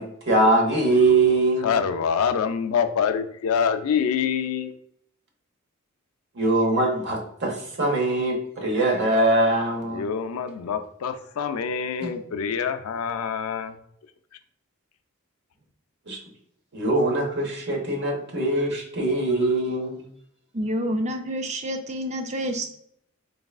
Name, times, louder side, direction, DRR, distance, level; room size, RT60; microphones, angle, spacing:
voice 1, 0.0-1.7 6.3-10.0 12.0-12.1 16.1-16.2 16.7-20.0, right 2 dB, 55° right, 1 dB, 1.0 m, -22 dB
voice 2, 1.6-4.7 9.9-13.8, left 7 dB, 80° left, 9 dB, 0.4 m, -26 dB
voice 3, 20.5-22.7, equal, 30° right, 5 dB, 0.5 m, -28 dB
3.9 x 3.4 x 2.3 m, 0.69 s
head